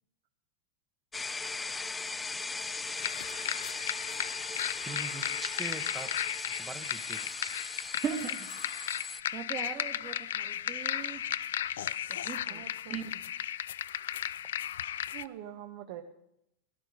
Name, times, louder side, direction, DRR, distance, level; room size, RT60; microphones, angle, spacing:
sound 1, 1.1-9.2, left 3 dB, 10° left, 0.5 m, -38 dB
sound 2, 3.0-15.3, left 11 dB, 85° left, 0.4 m, -35 dB
voice 1, 4.8-7.8, right 3 dB, 10° right, 10 dB, 1.1 m, -43 dB
voice 2, 8.0-8.7 9.3-11.2 12.1-12.6 12.9-13.1, right 7 dB, 30° right, 7 dB, 1.6 m, -39 dB
voice 3, 12.5-12.9 15.1-16.0, right 11 dB, 60° right, 4 dB, 1.2 m, -44 dB
16.5 x 11.5 x 4.9 m, 0.82 s
supercardioid pair, 135°, 0 cm